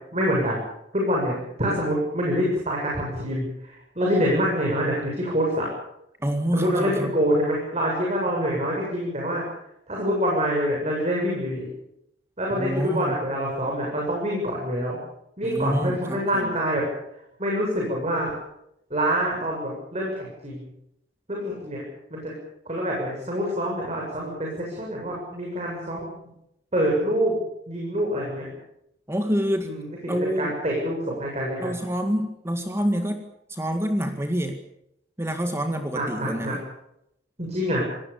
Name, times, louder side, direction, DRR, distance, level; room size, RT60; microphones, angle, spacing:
voice 1, 0.1-0.6 0.9-5.7 6.5-9.4 9.9-11.7 12.4-15.0 15.4-16.8 17.4-18.3 18.9-20.7 21.3-21.8 22.1-22.3 22.7-26.1 26.7-27.4 27.7-28.5 29.6-31.8 35.9-36.5 37.4-37.8, equal, 40° right, -2 dB, 7.5 m, -26 dB
voice 2, 6.2-7.1 12.5-13.1 15.4-16.5 29.1-29.7 30.1-30.5 31.6-33.2 33.5-34.6 35.2-36.6, equal, 15° right, 5 dB, 1.9 m, -27 dB
27.5 x 18.5 x 7.0 m, 0.80 s
head